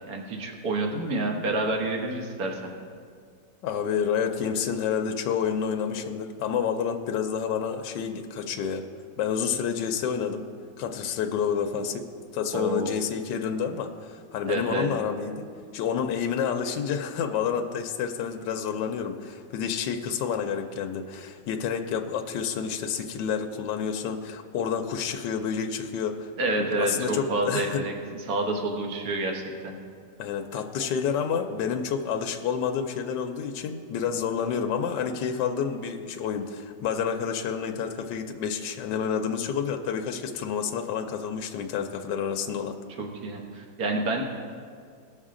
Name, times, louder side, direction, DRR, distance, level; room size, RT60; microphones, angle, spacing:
voice 1, 0.1-2.7 12.5-12.9 14.5-14.9 26.4-27.9 28.3-29.7 30.8-30.9 43.0-44.2, right 2 dB, 55° right, 1 dB, 1.7 m, -28 dB
voice 2, 3.6-8.9 9.2-10.5 10.8-12.1 12.3-15.5 15.7-26.3 26.6-27.8 30.2-42.8, left 7 dB, 75° left, 4 dB, 1.3 m, -29 dB
18.5 x 6.4 x 3.8 m, 2.2 s
omnidirectional pair, 2.1 m